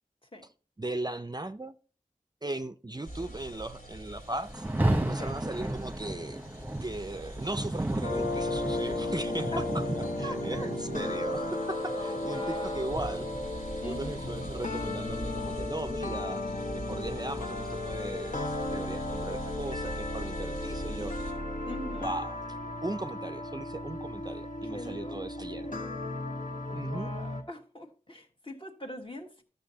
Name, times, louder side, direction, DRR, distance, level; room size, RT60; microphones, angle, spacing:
voice 1, 0.8-1.8 2.4-6.4 6.8-13.3 13.8-16.4 16.7-21.2 22.0-22.3 22.8-25.7 26.7-27.1, right 2 dB, 30° right, 0.4 m, -38 dB
sound 1, 3.1-21.3, right 1 dB, 85° left, 3.2 m, -45 dB
Rain, 4.5-13.6, right 1 dB, 10° right, 1.0 m, -34 dB
sound 2, 8.0-27.4, left 2 dB, 65° left, 1.4 m, -35 dB
voice 2, 10.2-10.7 11.9-13.1 13.8-14.4 21.6-22.2 24.7-26.0 26.7-29.4, left 1 dB, 35° left, 1.5 m, -43 dB
13.0 x 6.6 x 2.8 m
wide cardioid pair, 50°, 15 cm